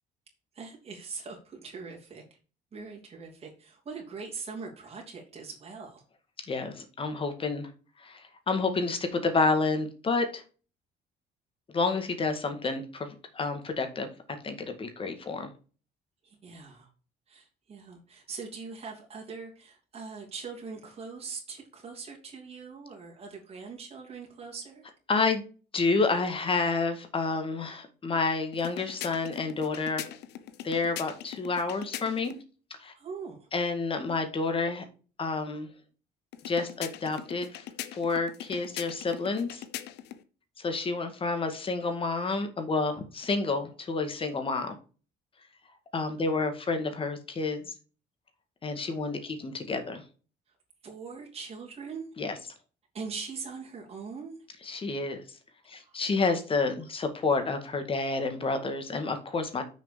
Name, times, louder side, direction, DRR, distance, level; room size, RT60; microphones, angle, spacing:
voice 1, 0.5-2.4 2.7-6.0 16.2-16.9 17.3-24.9 33.0-33.5 49.2-49.3 50.8-52.1 52.9-54.4 55.8-56.0, right 5 dB, 35° right, -1 dB, 2.9 m, -42 dB
voice 2, 6.5-7.7 8.0-10.4 11.7-14.1 14.4-15.5 25.1-25.4 25.7-30.0 30.6-32.3 32.8-32.9 33.5-34.8 35.2-35.7 36.5-37.6 37.9-39.6 40.6-44.8 45.9-47.7 48.6-50.0 52.2-52.3 54.6-55.2 55.7-59.6, left 4 dB, 30° left, 7 dB, 2.0 m, -29 dB
sound 1, 28.5-32.4 36.3-40.2, left 12 dB, 80° left, 0.9 m, -41 dB
6.7 x 5.0 x 6.9 m, 0.37 s
cardioid pair, 110°, 17 cm